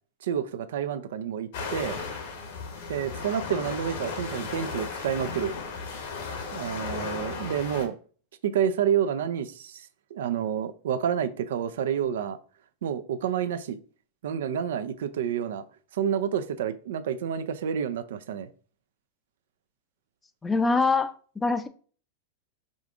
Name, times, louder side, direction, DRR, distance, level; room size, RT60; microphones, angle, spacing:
voice 1, 0.2-2.0 2.9-5.5 6.5-8.0 8.4-9.8 10.1-12.4 12.8-13.8 14.2-15.6 15.9-18.5, right 8 dB, 75° right, 0.4 m, -29 dB
sound 1, 1.5-7.9, left 4 dB, 70° left, 1.2 m, -35 dB
voice 2, 20.4-21.7, left 3 dB, 15° left, 0.5 m, -24 dB
5.0 x 2.4 x 3.7 m
hypercardioid pair, 115°, 0 cm